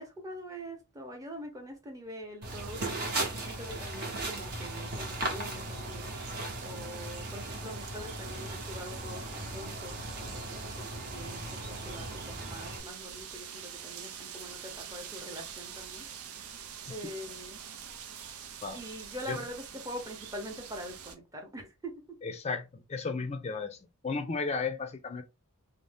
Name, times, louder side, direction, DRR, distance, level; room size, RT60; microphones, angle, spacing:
voice 1, 0.0-6.1 6.6-16.1 16.4-16.5 16.9-17.6 18.7-21.9, equal, 15° right, 0.7 m, -44 dB
sound 1, 2.4-12.8, right 2 dB, 50° right, 0.8 m, -38 dB
sound 2, 2.4-21.2, right 8 dB, 80° right, 0.5 m, -46 dB
voice 2, 22.2-23.8 24.0-25.2, left 4 dB, 30° left, 0.4 m, -34 dB
2.6 x 2.0 x 3.3 m
head